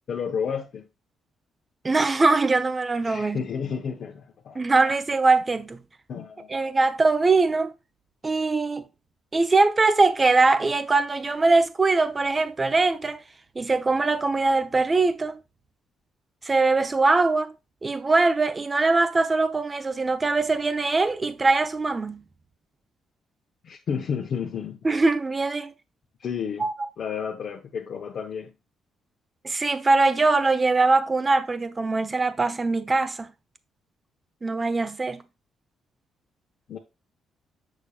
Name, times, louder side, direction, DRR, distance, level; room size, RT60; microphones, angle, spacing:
voice 1, 0.1-0.9 3.0-4.6 6.1-6.5 23.6-24.8 26.2-26.7 27.0-28.5 36.7-36.8, left 7 dB, 60° left, 0.9 m, -31 dB
voice 2, 1.8-3.4 4.5-5.8 6.5-7.7 8.2-8.8 9.3-13.2 13.5-15.4 16.4-17.5 17.8-22.2 24.8-25.7 26.6-26.7 29.4-33.3 34.4-35.2, right 3 dB, 25° right, 0.7 m, -22 dB
6.7 x 6.2 x 2.4 m
cardioid pair, 90°, 0 cm